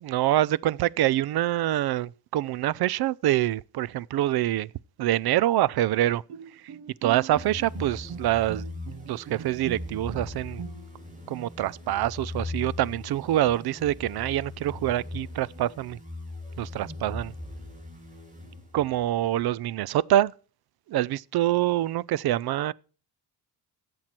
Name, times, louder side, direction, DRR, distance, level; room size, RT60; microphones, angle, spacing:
voice 1, 0.0-4.7 5.0-6.2 7.0-8.6 9.1-10.6 11.3-16.0 16.6-17.3 18.7-20.3 20.9-22.7, right 13 dB, 65° right, 0.5 m, -25 dB
Bowed string instrument, 6.3-11.2, right 8 dB, 80° right, 1.3 m, -41 dB
sound 1, 7.3-19.1, left 2 dB, 20° right, 6.8 m, -40 dB
15.0 x 7.8 x 4.4 m
cardioid pair, 110°, 41 cm